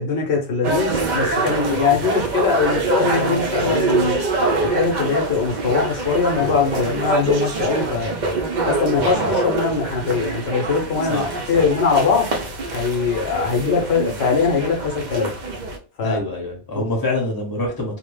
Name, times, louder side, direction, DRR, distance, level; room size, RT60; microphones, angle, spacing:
voice 1, 0.0-4.2 4.6-8.1 8.6-11.2 11.5-12.3 12.7-15.3 16.0-16.2 17.0-17.1, left 5 dB, 70° left, 0 dB, 0.9 m, -21 dB
sound 1, 0.6-15.8, right 3 dB, 55° right, 0.6 m, -24 dB
voice 2, 16.0-18.0, left 2 dB, 20° left, 0 dB, 1.0 m, -25 dB
2.8 x 2.0 x 3.1 m, 0.37 s
omnidirectional pair, 1.1 m